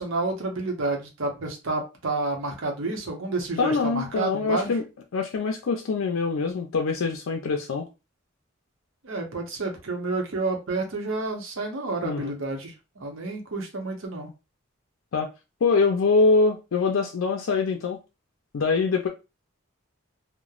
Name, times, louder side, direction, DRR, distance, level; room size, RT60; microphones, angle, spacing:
voice 1, 0.0-4.7 9.0-14.3, right 3 dB, 85° right, 0.9 m, -30 dB
voice 2, 3.6-4.8 5.1-7.9 12.0-12.4 15.1-15.3 15.6-18.0 18.5-19.1, left 4 dB, 85° left, 0.4 m, -24 dB
3.0 x 2.1 x 2.4 m
head